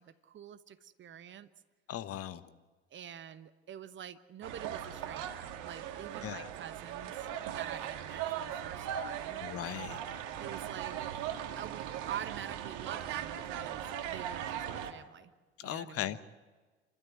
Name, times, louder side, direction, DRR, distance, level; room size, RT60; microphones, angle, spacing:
voice 1, 0.0-1.5 2.9-9.4 10.4-11.0 11.5-15.3 15.6-16.2, right 9 dB, 35° right, 13 dB, 1.1 m, -46 dB
voice 2, 1.9-2.5 6.2-6.5 9.4-10.1 15.6-16.2, left 12 dB, 40° left, 13 dB, 1.1 m, -38 dB
sound 1, 4.4-14.9, right 10 dB, 55° right, 2.0 m, -39 dB
28.5 x 13.0 x 9.4 m, 1.4 s
hypercardioid pair, 80°, 35 cm